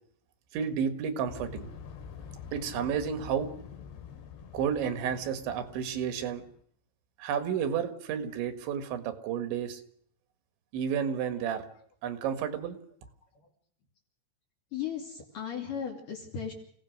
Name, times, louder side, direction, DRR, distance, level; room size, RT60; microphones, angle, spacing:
voice 1, 0.5-1.7 2.5-3.5 4.5-6.4 7.2-9.8 10.7-11.7 12.0-12.8, right 8 dB, 80° right, 9 dB, 4.1 m, -31 dB
sound 1, 1.2-6.6, left 7 dB, 70° left, 4.2 m, -46 dB
voice 2, 14.7-16.5, left 8 dB, 50° left, -1 dB, 3.8 m, -37 dB
29.0 x 17.5 x 6.5 m, 0.64 s
omnidirectional pair, 5.2 m